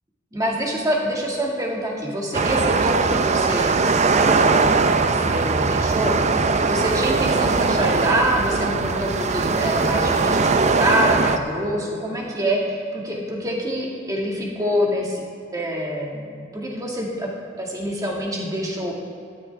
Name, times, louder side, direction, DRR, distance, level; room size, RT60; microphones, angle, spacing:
voice 1, 0.3-3.8 4.2-6.2 6.6-15.2 15.5-16.3 16.5-17.3 17.6-18.9, equal, 20° right, -3 dB, 2.2 m, -25 dB
sound 1, 2.3-11.4, right 4 dB, 35° right, 0.6 m, -20 dB
14.0 x 13.5 x 3.6 m, 2.4 s
head